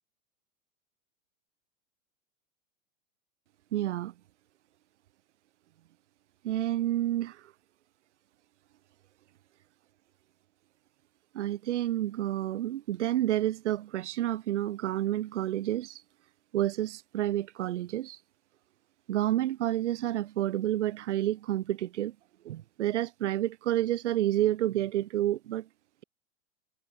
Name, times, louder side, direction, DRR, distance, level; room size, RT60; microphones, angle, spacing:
voice 1, 3.7-4.1 6.4-7.5 11.3-16.0 16.5-18.2 19.1-22.1 22.4-25.7, right 13 dB, 60° right, 4.8 m, -29 dB
figure-of-eight pair, 100°, 40 cm